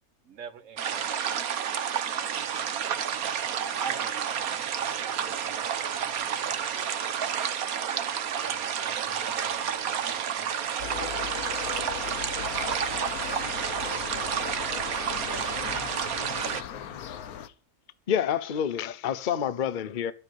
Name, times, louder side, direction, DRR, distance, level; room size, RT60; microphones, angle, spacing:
voice 1, 0.2-2.0 3.2-6.9 7.7-8.0, right 6 dB, 60° right, 1.4 m, -45 dB
sound 1, 0.8-16.6, right 8 dB, 80° right, 1.4 m, -30 dB
voice 2, 8.4-11.5 13.8-14.5 14.7-17.3, left 2 dB, 25° left, 3.5 m, -52 dB
sound 2, 10.8-17.5, left 10 dB, 85° left, 1.4 m, -37 dB
voice 3, 18.1-20.1, left 9 dB, 45° left, 0.8 m, -28 dB
12.5 x 7.1 x 9.3 m
omnidirectional pair, 1.5 m